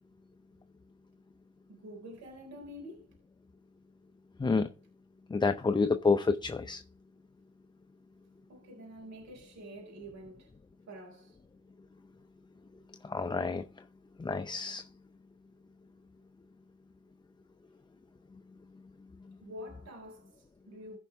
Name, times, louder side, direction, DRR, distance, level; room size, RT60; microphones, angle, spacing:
voice 1, 1.7-3.2 8.5-10.5 10.9-11.4 19.4-21.0, equal, 65° right, 3.8 m, -47 dB
voice 2, 5.3-6.8 13.0-13.7 14.2-14.8, left 4 dB, 15° left, 0.5 m, -28 dB
15.0 x 5.5 x 3.5 m
cardioid pair, 90°, 30 cm